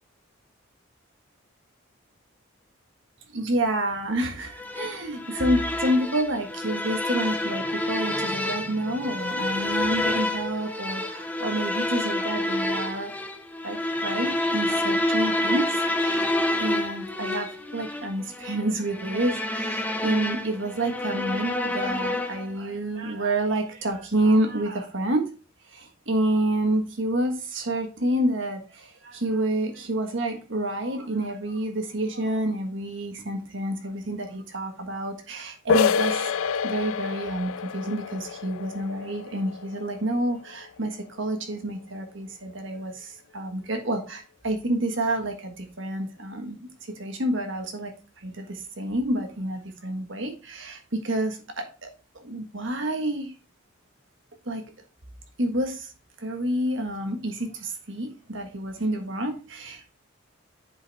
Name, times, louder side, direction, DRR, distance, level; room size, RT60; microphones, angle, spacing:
voice 1, 3.3-13.1 13.6-13.8 14.0-16.3 16.6-17.5 17.7-25.2 25.7-36.3 36.6-46.7 47.0-47.9 48.2-51.9 52.2-53.3 54.4-54.6 55.4-55.9 56.2-59.9, right 1 dB, 60° right, 4 dB, 1.5 m, -28 dB
sound 1, 4.6-22.6, left 1 dB, 10° left, 0.7 m, -28 dB
sound 2, 35.7-41.2, left 6 dB, 75° left, 0.3 m, -28 dB
8.1 x 5.1 x 3.5 m, 0.33 s
head